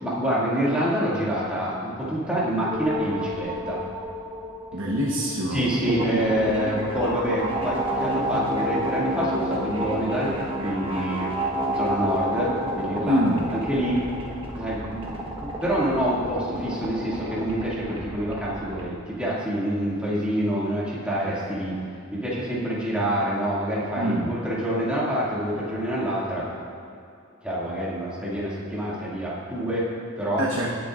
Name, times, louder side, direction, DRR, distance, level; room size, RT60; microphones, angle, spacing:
voice 1, 0.0-3.8 5.5-11.3 11.7-13.2 13.5-14.1 14.6-26.5 27.4-30.4, equal, 5° right, -8 dB, 2.3 m, -27 dB
sound 1, 2.7-18.8, equal, 25° right, 1.2 m, -30 dB
voice 2, 4.7-5.7 13.1-13.5 23.9-24.4 30.4-30.7, equal, 70° right, -4 dB, 1.1 m, -25 dB
19.0 x 7.8 x 2.5 m, 2.5 s
head